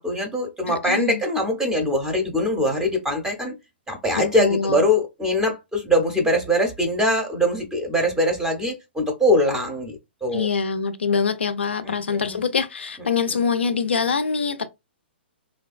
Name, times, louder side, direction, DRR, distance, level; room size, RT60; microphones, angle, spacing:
voice 1, 0.0-3.5 3.9-10.5 11.8-12.4, left 1 dB, 10° right, 0.5 m, -22 dB
voice 2, 0.7-1.2 4.2-4.8 10.3-14.8, left 5 dB, 90° left, 0.4 m, -24 dB
2.8 x 2.2 x 2.4 m
hypercardioid pair, 130°, 6 cm